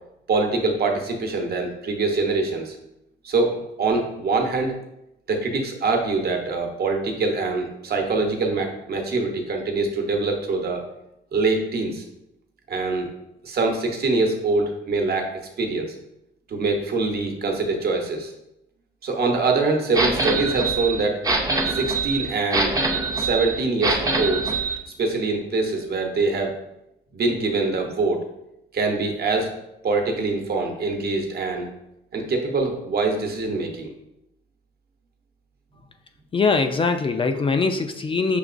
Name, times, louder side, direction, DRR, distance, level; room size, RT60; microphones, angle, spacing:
voice 1, 0.3-2.7 3.2-4.8 5.3-10.8 11.3-12.0 12.7-13.1 13.4-15.3 15.6-15.9 16.5-18.3 19.0-21.2 21.7-22.7 23.2-24.5 25.0-26.5 27.1-28.2 28.7-29.5 29.8-31.7 32.1-33.9, right 3 dB, 50° right, 3 dB, 0.9 m, -24 dB
sound 1, 19.9-24.8, right 3 dB, 15° right, 0.6 m, -24 dB
voice 2, 36.3-38.4, left 4 dB, 25° left, 7 dB, 0.4 m, -22 dB
6.3 x 2.9 x 2.5 m, 0.85 s
cardioid pair, 90°, 20 cm